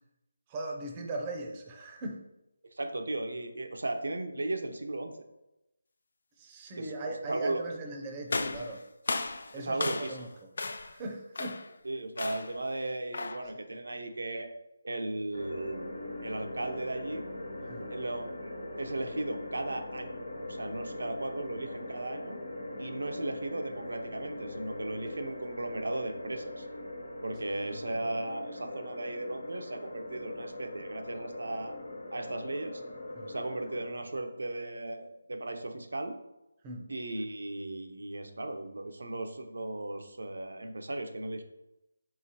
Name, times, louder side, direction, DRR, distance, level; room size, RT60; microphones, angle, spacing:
voice 1, 0.5-2.2 6.4-8.8 9.5-10.3 10.8-11.6 17.7-17.9 27.9-28.0 33.2-33.3 36.6-36.9, right 2 dB, 20° right, 2 dB, 0.5 m, -39 dB
voice 2, 2.7-5.1 6.8-7.6 9.6-10.2 11.8-14.5 14.8-15.9 16.2-17.2 17.9-20.2 20.5-22.4 22.8-26.7 27.2-31.8 32.1-32.8 33.3-36.2 36.9-41.4, right 2 dB, 80° right, 6 dB, 0.6 m, -36 dB
sound 1, 8.3-10.3 10.6-11.0 11.3-11.7 12.2-12.6 13.1-13.5, left 3 dB, 60° left, 0.4 m, -35 dB
sound 2, 15.3-33.8, left 1 dB, 85° left, 1.1 m, -41 dB
4.8 x 3.3 x 2.8 m, 0.90 s
figure-of-eight pair, 165°, 0 cm